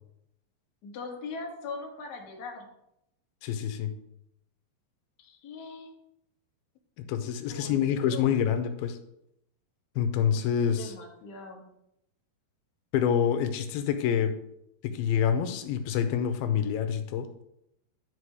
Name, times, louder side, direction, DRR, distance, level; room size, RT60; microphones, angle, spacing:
voice 1, 0.8-2.7 5.2-5.9 7.5-8.3 10.8-11.6, left 4 dB, 60° left, 0 dB, 1.0 m, -41 dB
voice 2, 3.4-3.9 7.0-9.0 10.0-10.9 12.9-14.3 14.8-17.3, left 8 dB, 90° left, 8 dB, 2.5 m, -27 dB
10.0 x 4.8 x 4.7 m, 0.80 s
omnidirectional pair, 4.4 m